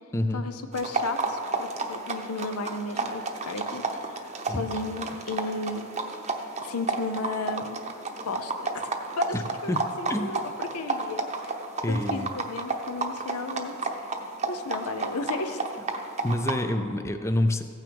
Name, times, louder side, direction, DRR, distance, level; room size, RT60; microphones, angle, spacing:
voice 1, 0.3-4.2 4.5-5.9 6.6-7.8 8.2-8.9 9.2-11.5 11.9-13.8 14.5-15.8, left 3 dB, 85° left, 8 dB, 0.7 m, -34 dB
sound 1, 0.7-16.6, right 3 dB, 30° right, 0.7 m, -32 dB
voice 2, 11.8-12.4 16.2-17.6, left 1 dB, 15° left, 7 dB, 0.4 m, -27 dB
15.5 x 9.1 x 3.5 m, 2.3 s
head